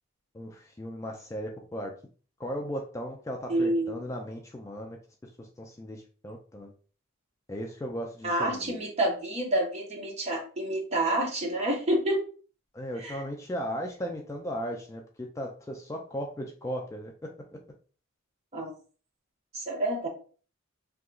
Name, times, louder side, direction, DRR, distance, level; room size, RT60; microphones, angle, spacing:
voice 1, 0.3-2.0 2.4-5.0 5.2-6.7 7.5-8.8 12.7-17.3, equal, 15° left, 1 dB, 0.3 m, -36 dB
voice 2, 3.5-3.9 8.2-12.2 13.0-13.2 18.5-18.7 19.5-20.1, right 1 dB, 30° right, -1 dB, 0.9 m, -28 dB
2.8 x 2.3 x 3.6 m, 0.40 s
head